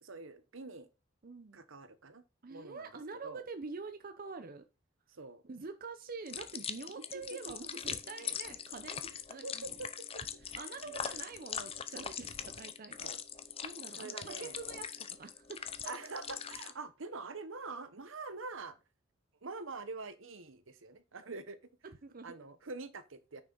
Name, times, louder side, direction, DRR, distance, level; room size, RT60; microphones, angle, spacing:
voice 1, 0.0-0.9 1.5-2.2 2.5-2.9 3.2-3.4 5.1-5.4 7.0-7.5 9.4-10.2 10.5-11.2 13.0-13.2 13.9-14.5 15.9-18.8 19.4-21.6 22.2-23.4, right 3 dB, 70° right, 1.0 m, -45 dB
voice 2, 1.2-1.6 2.4-4.6 5.4-9.8 10.2-13.1 13.6-15.9 21.8-22.4, right 4 dB, 45° right, 0.7 m, -46 dB
sound 1, 6.3-16.7, left 8 dB, 30° left, 0.6 m, -42 dB
9.5 x 6.1 x 3.9 m
head